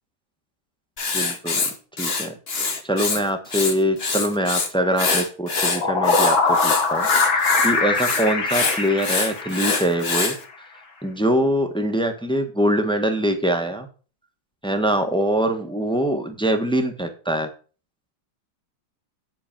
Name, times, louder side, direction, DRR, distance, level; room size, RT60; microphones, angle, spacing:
Writing, 1.0-3.2 3.5-4.7 5.0-10.4, left 4 dB, 35° left, 1.4 m, -25 dB
voice 1, 1.1-1.6 2.0-2.4 2.8-10.3 11.0-13.9 14.6-17.5, right 1 dB, 5° left, 5 dB, 1.0 m, -23 dB
sound 1, 5.5-9.9, left 4 dB, 70° left, 2.6 m, -22 dB
8.0 x 6.0 x 7.4 m, 0.38 s
omnidirectional pair, 2.3 m